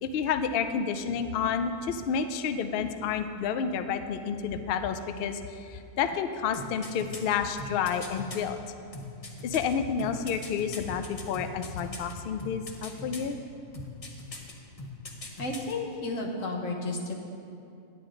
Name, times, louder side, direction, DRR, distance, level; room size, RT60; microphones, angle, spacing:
voice 1, 0.0-8.6 9.4-13.4, left 7 dB, 90° left, 9 dB, 0.5 m, -30 dB
sound 1, 6.5-8.4 8.9-12.1 12.4-13.3 13.7-14.5 14.8-15.7 16.0-16.1, left 1 dB, 30° left, 0.7 m, -40 dB
voice 2, 15.4-17.1, left 2 dB, 65° left, 0 dB, 1.5 m, -32 dB
10.0 x 9.2 x 3.8 m, 2.5 s
omnidirectional pair, 1.5 m